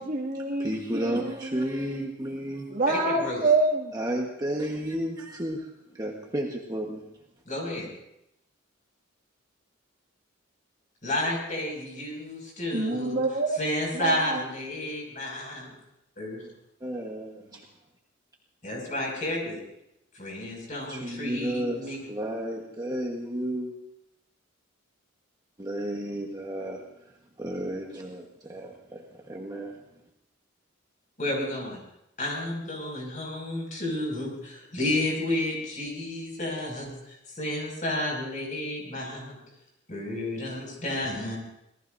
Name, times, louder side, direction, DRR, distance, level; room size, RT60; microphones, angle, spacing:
voice 1, 0.0-1.9 2.7-3.9 12.7-13.6 13.9-14.4, right 3 dB, 45° right, -1 dB, 2.2 m, -27 dB
voice 2, 0.6-2.7 3.9-7.0 16.8-17.6 20.9-23.7 25.6-26.8 27.4-29.8, right 1 dB, 20° right, -1 dB, 1.3 m, -32 dB
voice 3, 2.9-3.4 7.5-7.9 11.0-13.2 13.5-15.7 16.2-16.5 18.6-19.6 20.1-22.0 31.2-31.8 32.2-39.4 39.9-41.4, left 1 dB, 40° left, 0 dB, 6.2 m, -31 dB
27.0 x 18.5 x 2.7 m, 0.83 s
head